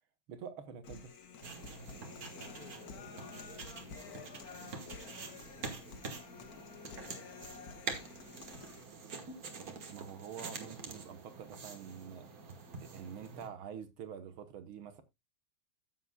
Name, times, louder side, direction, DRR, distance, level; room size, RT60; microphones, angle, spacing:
voice 1, 0.3-1.1 9.9-12.3 12.8-15.0, right 7 dB, 80° right, 2.0 m, -46 dB
Human voice, 0.8-8.8, left 6 dB, 50° left, 1.5 m, -51 dB
sound 1, 1.4-13.5, right 4 dB, 45° right, 1.9 m, -46 dB
voice 2, 2.2-6.5 6.9-7.9, left 2 dB, 30° left, 1.4 m, -59 dB
14.5 x 7.7 x 2.3 m
omnidirectional pair, 2.2 m